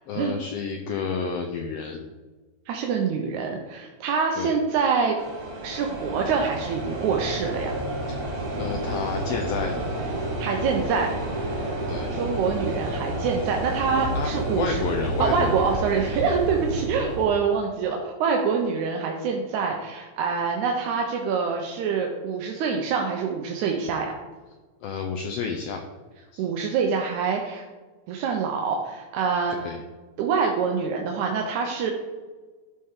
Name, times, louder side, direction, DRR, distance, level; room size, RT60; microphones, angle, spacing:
voice 1, 0.1-2.0 4.4-4.6 8.1-8.2 8.6-9.9 11.9-12.1 14.1-15.7 24.8-25.8 26.3-26.5 29.5-29.8, left 5 dB, 80° left, 3 dB, 1.4 m, -30 dB
voice 2, 2.7-5.2 5.6-7.7 10.4-11.1 11.4-11.8 12.1-14.8 15.2-24.1 26.4-27.6 28.1-29.6 30.2-31.9, right 5 dB, 85° right, 2 dB, 2.2 m, -25 dB
sound 1, 5.2-17.3, right 1 dB, 40° right, 1.4 m, -30 dB
12.5 x 4.3 x 3.7 m, 1.3 s
omnidirectional pair, 3.3 m